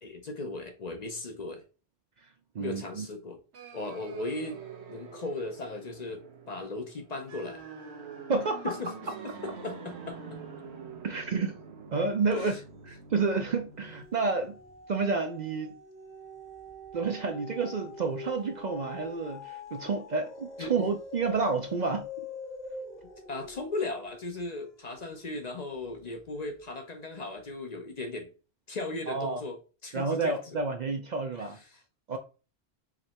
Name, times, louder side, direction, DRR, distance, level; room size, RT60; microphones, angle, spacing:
voice 1, 0.0-1.6 2.6-3.4 3.7-7.6 8.6-8.9 9.4-10.4 12.3-12.6 20.6-20.9 23.3-28.3 28.7-30.6 31.3-31.8, left 2 dB, 45° left, 0.7 m, -37 dB
voice 2, 2.5-3.1 8.3-8.7 11.0-11.5 11.9-12.5 12.9-14.6 14.9-15.7 16.9-22.1 29.1-29.4 29.9-31.6 32.1-32.2, right 4 dB, 55° right, 0.5 m, -30 dB
sound 1, 3.5-14.0, right 5 dB, 90° right, 1.1 m, -45 dB
sound 2, 12.6-13.1 13.5-26.0 26.5-26.6, left 3 dB, 80° left, 2.5 m, -45 dB
4.9 x 3.2 x 2.9 m
omnidirectional pair, 1.1 m